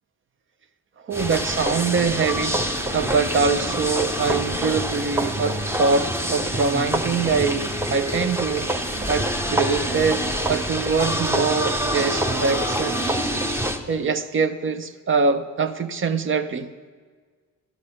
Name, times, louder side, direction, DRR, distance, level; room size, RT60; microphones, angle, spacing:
sound 1, 1.1-13.8, right 1 dB, 10° right, 0.8 m, -26 dB
voice 1, 1.1-2.6 2.9-8.7 9.1-13.0 13.9-16.7, right 4 dB, 40° right, 11 dB, 0.7 m, -23 dB
12.0 x 11.5 x 5.5 m, 1.5 s
cardioid pair, 90°, 30 cm